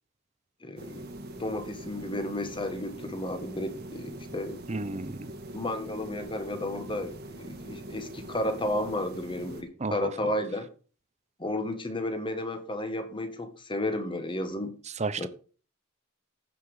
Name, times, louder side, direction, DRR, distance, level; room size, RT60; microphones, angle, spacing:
voice 1, 0.6-1.1 1.4-4.6 5.5-10.7 11.4-14.7 15.2-15.3, left 1 dB, 25° left, 8 dB, 1.6 m, -33 dB
sound 1, 0.8-9.6, right 1 dB, 50° right, 1.7 m, -43 dB
voice 2, 4.7-5.3 9.8-10.1 15.0-15.3, right 3 dB, 35° right, 14 dB, 0.8 m, -32 dB
15.5 x 6.0 x 5.0 m, 0.38 s
head